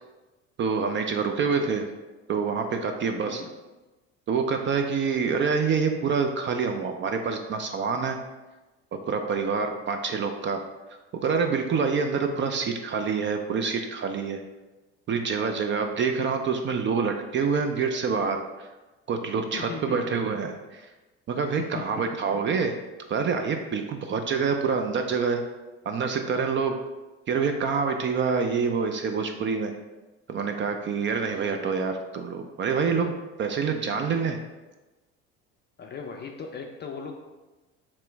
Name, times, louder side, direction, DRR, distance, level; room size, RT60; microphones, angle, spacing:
voice 1, 0.6-1.9 2.3-3.4 4.3-8.2 8.9-10.6 11.1-14.4 15.1-18.7 19.1-20.9 21.3-22.8 23.1-25.4 25.9-26.8 27.3-29.7 30.3-34.4, right 5 dB, 35° right, 5 dB, 0.4 m, -26 dB
voice 2, 19.5-20.0 21.6-22.1 35.8-37.2, left 5 dB, 30° left, 3 dB, 0.4 m, -38 dB
3.0 x 3.0 x 4.5 m, 1.1 s
hypercardioid pair, 70°, 34 cm